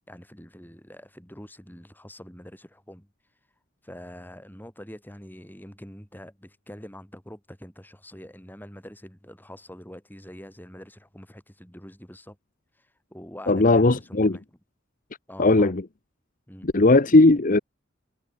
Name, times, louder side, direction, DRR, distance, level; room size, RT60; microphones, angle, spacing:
voice 1, 0.1-3.1 3.8-12.4 12.8-14.4 15.3-15.7 16.5-16.7, equal, 10° left, 7.3 m, -45 dB
voice 2, 13.5-14.4 15.4-15.8 16.6-17.6, left 2 dB, 40° left, 0.9 m, -18 dB
head